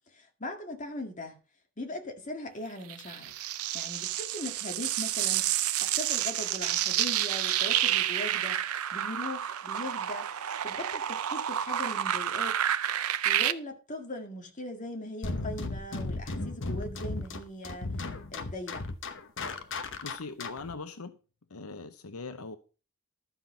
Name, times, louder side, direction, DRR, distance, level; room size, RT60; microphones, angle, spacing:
voice 1, 0.1-1.4 1.8-3.3 3.7-8.6 8.9-10.3 10.6-12.6 13.2-17.9 18.3-18.9, left 1 dB, 35° left, 2.0 m, -40 dB
sound 1, 2.9-13.5, right 11 dB, 80° right, 0.6 m, -29 dB
sound 2, 15.2-20.7, left 3 dB, 60° left, 1.0 m, -35 dB
voice 2, 20.0-21.2 21.5-22.6, left 3 dB, 85° left, 0.9 m, -41 dB
13.0 x 5.9 x 5.4 m
head